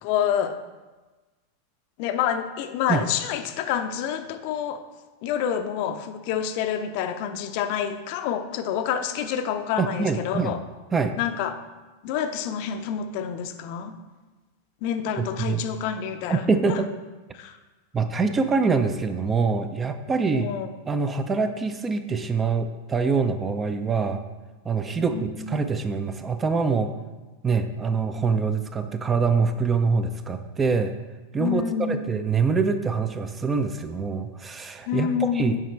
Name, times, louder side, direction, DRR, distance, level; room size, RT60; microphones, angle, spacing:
voice 1, 0.0-0.6 2.0-4.8 5.2-10.6 11.2-11.5 12.0-14.0 14.8-16.4 16.7-16.8 17.3-17.6 20.3-20.7 25.1-25.6 28.1-28.3 31.4-32.1 34.9-35.6, left 8 dB, 45° left, 8 dB, 0.5 m, -28 dB
voice 2, 9.8-10.5 10.9-11.2 15.2-15.7 16.3-16.9 17.9-20.5 20.9-24.2 24.6-27.0 27.4-30.9 31.3-35.6, right 5 dB, 20° right, 9 dB, 0.4 m, -25 dB
7.3 x 4.9 x 4.5 m, 1.2 s
figure-of-eight pair, 90°, 0 cm